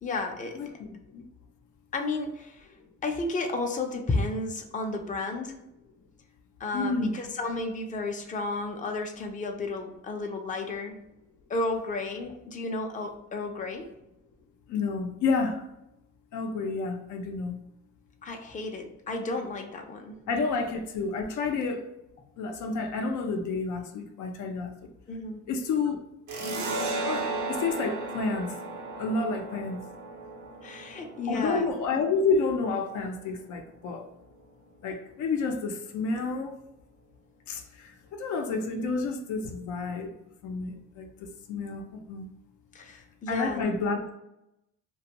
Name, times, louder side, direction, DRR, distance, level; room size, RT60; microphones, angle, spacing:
voice 1, 0.0-0.8 1.9-2.7 3.0-5.6 6.6-11.0 11.5-13.9 18.2-20.2 25.1-25.4 30.6-31.7 42.7-43.7, left 2 dB, 25° left, 3 dB, 0.5 m, -32 dB
voice 2, 0.5-1.2 6.7-7.2 14.7-15.6 16.3-17.6 20.3-21.9 22.4-24.7 25.5-26.0 27.0-28.5 29.0-29.8 31.3-34.0 34.8-36.5 37.5-40.1 40.4-42.3 43.3-44.0, left 4 dB, 75° left, 3 dB, 0.5 m, -30 dB
sound 1, 26.3-33.5, right 2 dB, 70° right, 0.7 m, -35 dB
2.5 x 2.2 x 2.8 m, 0.87 s
cardioid pair, 90°, 30 cm